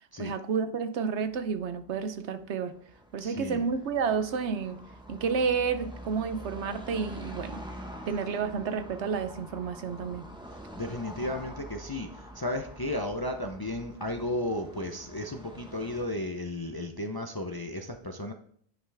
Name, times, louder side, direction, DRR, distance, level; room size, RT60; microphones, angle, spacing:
voice 1, 0.2-2.7 3.1-4.8 5.1-7.6 8.1-10.2, right 5 dB, 75° right, 10 dB, 1.0 m, -30 dB
Car passing by / Traffic noise roadway noise, 1.4-16.1, right 1 dB, 5° right, 1.0 m, -46 dB
voice 2, 3.2-3.6 10.7-18.3, left 1 dB, 30° left, 4 dB, 0.5 m, -34 dB
9.5 x 5.7 x 3.4 m, 0.63 s
omnidirectional pair, 1.2 m